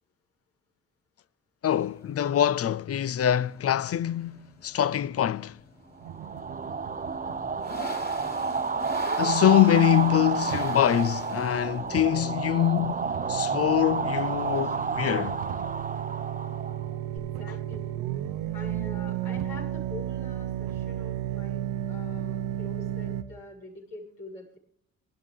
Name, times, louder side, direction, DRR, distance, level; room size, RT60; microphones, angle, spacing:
voice 1, 1.6-5.6 9.2-13.0 13.3-15.4, left 11 dB, 40° left, 0.5 m, -24 dB
sound 1, 1.8-19.7, left 2 dB, 25° left, 2.9 m, -46 dB
sound 2, 6.0-8.1 10.5-10.7 12.0-12.1 12.4-23.2, right 11 dB, 90° right, 0.8 m, -34 dB
sound 3, 6.1-17.2, right 5 dB, 25° right, 0.8 m, -30 dB
voice 2, 17.1-17.9 18.5-24.6, left 2 dB, 75° left, 7.7 m, -45 dB
24.0 x 12.0 x 3.7 m
supercardioid pair, 55°, 36 cm